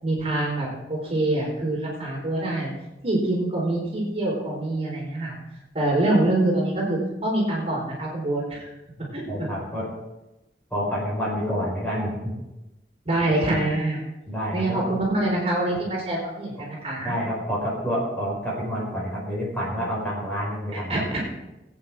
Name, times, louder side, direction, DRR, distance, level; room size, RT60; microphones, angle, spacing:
voice 1, 0.0-2.7 3.0-5.4 5.7-8.7 9.1-9.2 13.1-14.1 14.5-17.2 20.7-21.2, right 1 dB, 35° right, -3 dB, 4.2 m, -25 dB
voice 2, 9.3-9.9 10.7-12.3 14.3-14.8 17.0-21.1, equal, 10° left, -6 dB, 5.2 m, -28 dB
21.0 x 8.9 x 3.7 m, 0.99 s
head